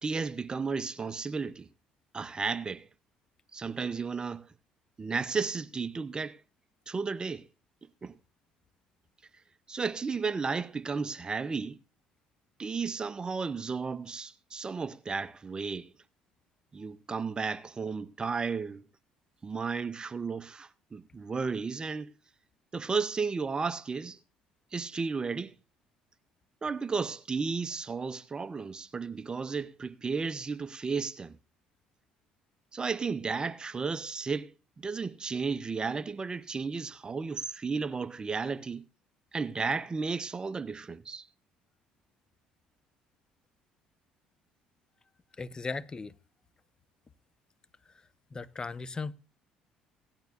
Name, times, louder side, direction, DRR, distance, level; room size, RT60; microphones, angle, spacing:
voice 1, 0.0-1.7 2.1-2.9 3.5-4.5 5.0-6.4 6.9-7.5 8.0-8.1 9.7-11.8 12.6-15.9 16.7-18.9 19.4-22.1 22.7-24.2 24.7-25.5 26.6-31.4 32.7-38.8 39.3-41.3, right 5 dB, 30° right, 0.7 m, -33 dB
voice 2, 45.4-46.1 48.3-49.1, left 4 dB, 30° left, 0.9 m, -37 dB
17.5 x 12.0 x 2.5 m
supercardioid pair, 70°, 3 cm